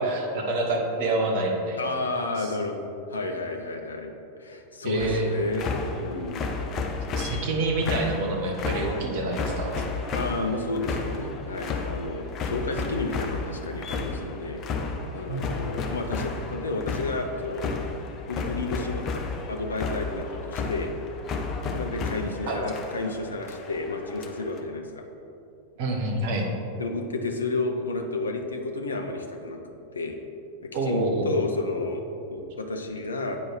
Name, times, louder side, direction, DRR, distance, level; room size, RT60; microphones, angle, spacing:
voice 1, 0.0-1.8 2.4-2.5 4.8-5.3 7.2-9.8 15.3-15.7 22.5-22.6 25.8-26.5 30.7-31.4, right 2 dB, 50° right, 1 dB, 1.2 m, -27 dB
voice 2, 1.8-2.8 3.1-4.1 4.4-6.5 10.1-17.7 18.3-19.1 19.5-20.9 21.7-25.1 26.8-29.6 29.9-30.2 30.8-32.0 32.3-33.4, left 3 dB, 75° left, 4 dB, 0.7 m, -31 dB
sound 1, 5.0-24.6, left 4 dB, 30° left, 0.7 m, -33 dB
8.7 x 4.6 x 4.8 m, 2.7 s
figure-of-eight pair, 90°, 0 cm